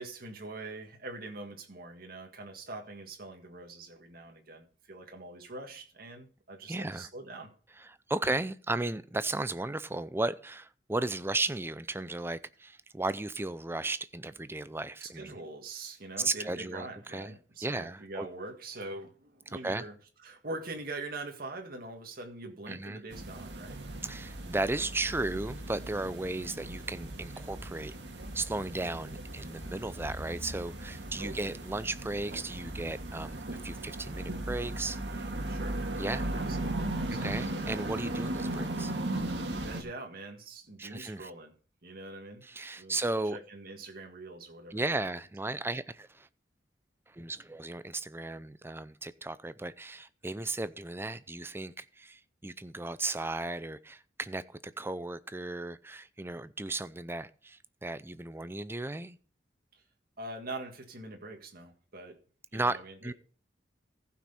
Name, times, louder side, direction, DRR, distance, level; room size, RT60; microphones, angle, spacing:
voice 1, 0.0-7.5 15.0-20.0 20.2-23.8 31.2-31.5 35.5-37.5 39.5-41.5 41.8-42.5 42.8-43.0 43.3-44.9 60.2-62.2 62.5-63.1, right 2 dB, 55° right, 1.8 m, -43 dB
voice 2, 6.7-7.1 7.8-15.4 16.2-17.3 17.6-18.3 19.5-19.8 22.7-23.0 24.0-28.0 28.3-35.3 36.0-36.2 37.1-38.9 40.8-41.3 42.4-43.4 44.7-46.3 47.1-59.2 62.5-63.1, right 2 dB, 15° right, 0.5 m, -35 dB
sound 1, 23.1-39.8, right 1 dB, 85° right, 1.8 m, -37 dB
15.0 x 6.1 x 4.3 m
head